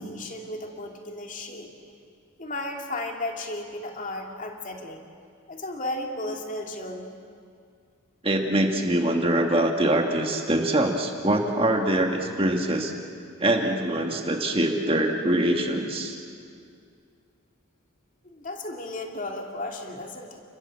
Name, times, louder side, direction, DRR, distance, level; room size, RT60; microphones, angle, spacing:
voice 1, 0.0-1.7 2.4-5.0 5.5-7.2 18.2-20.4, left 2 dB, 35° left, 2 dB, 2.5 m, -34 dB
voice 2, 8.2-12.9 13.4-16.2, right 1 dB, 25° right, 3 dB, 1.7 m, -24 dB
30.0 x 21.5 x 7.6 m, 2.3 s
head